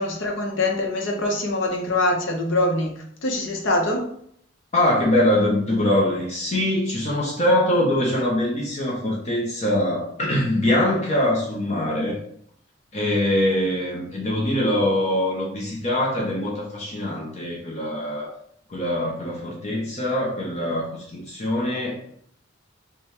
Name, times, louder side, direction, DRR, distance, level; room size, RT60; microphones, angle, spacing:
voice 1, 0.0-4.1, left 2 dB, 70° left, 0 dB, 0.8 m, -24 dB
voice 2, 4.7-12.2 12.9-18.3 18.7-21.9, left 1 dB, 35° left, -3 dB, 0.7 m, -23 dB
3.4 x 2.3 x 4.2 m, 0.67 s
head